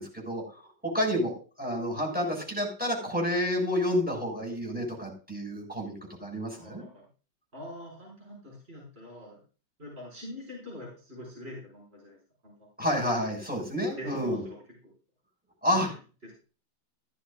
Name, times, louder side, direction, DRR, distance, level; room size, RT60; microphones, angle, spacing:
voice 1, 0.0-6.8 12.8-14.4 15.6-15.9, equal, 5° right, -1 dB, 6.4 m, -30 dB
voice 2, 6.5-7.1 7.5-9.4 9.8-12.2 12.4-12.7 13.8-14.9 15.7-15.9 16.2-16.3, left 1 dB, 35° right, -4 dB, 6.5 m, -44 dB
15.5 x 14.5 x 2.6 m, 0.37 s
omnidirectional pair, 1.9 m